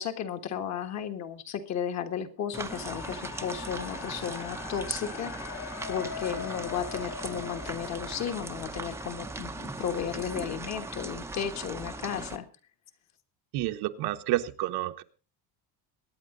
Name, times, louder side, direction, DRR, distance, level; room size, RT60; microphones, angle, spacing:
voice 1, 0.0-5.5 5.9-12.5, left 8 dB, 45° left, 6 dB, 1.6 m, -34 dB
sound 1, 2.5-12.4, right 3 dB, 5° right, 0.7 m, -39 dB
sound 2, 2.7-8.8, left 8 dB, 60° left, 2.8 m, -42 dB
voice 2, 13.5-15.0, right 15 dB, 70° right, 7 dB, 1.2 m, -29 dB
23.0 x 9.4 x 3.9 m, 0.35 s
cardioid pair, 180°, 40 cm